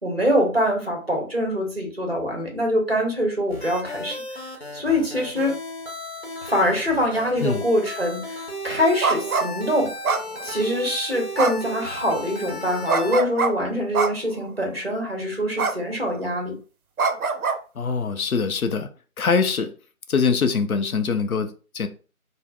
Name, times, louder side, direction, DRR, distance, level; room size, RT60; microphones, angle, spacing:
voice 1, 0.0-4.2 4.7-5.5 6.4-9.9 10.4-16.5, equal, 45° right, 0.8 m, -24 dB
sound 1, 3.5-13.2, equal, 45° left, 0.9 m, -35 dB
sound 2, 9.0-9.5 10.0-10.7 11.4-11.8 12.9-13.5 13.9-14.4 15.6-15.8 16.1-16.3 17.0-17.6, right 4 dB, 75° right, 0.5 m, -23 dB
voice 2, 17.7-18.9 19.2-19.7 20.1-21.9, left 5 dB, 75° left, 0.6 m, -23 dB
3.6 x 2.0 x 2.2 m
figure-of-eight pair, 180°, 43 cm